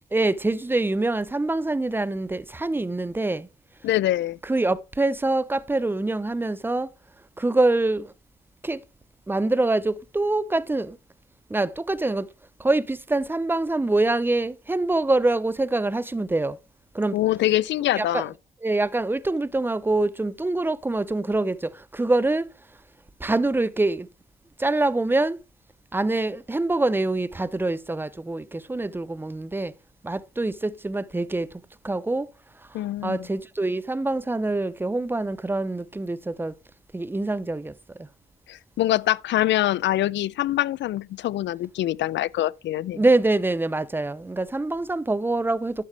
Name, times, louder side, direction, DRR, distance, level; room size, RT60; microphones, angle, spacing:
voice 1, 0.1-3.5 4.4-6.9 7.4-8.1 8.6-8.8 9.3-11.0 11.5-12.3 12.6-16.6 16.9-17.2 17.9-18.2 18.6-22.5 23.2-24.1 24.6-25.4 25.9-29.7 30.0-31.5 31.8-32.3 33.0-36.5 36.9-37.7 42.9-45.8, right 2 dB, 10° right, 0.6 m, -25 dB
voice 2, 3.8-4.4 17.1-18.3 32.7-33.2 38.5-43.0, left 14 dB, 65° left, 0.4 m, -24 dB
11.5 x 8.4 x 3.3 m
cardioid pair, 90°, 20 cm